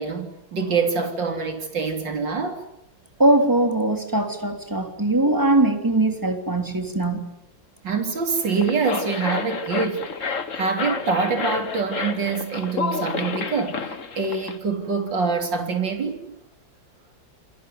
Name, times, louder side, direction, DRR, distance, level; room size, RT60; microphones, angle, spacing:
voice 1, 0.0-2.6 7.8-16.3, right 4 dB, 70° right, 4.2 m, -25 dB
voice 2, 3.2-7.3, right 2 dB, 10° right, 3.3 m, -21 dB
sound 1, 8.4-14.6, left 5 dB, 45° left, 1.9 m, -30 dB
28.5 x 21.5 x 9.6 m
omnidirectional pair, 2.1 m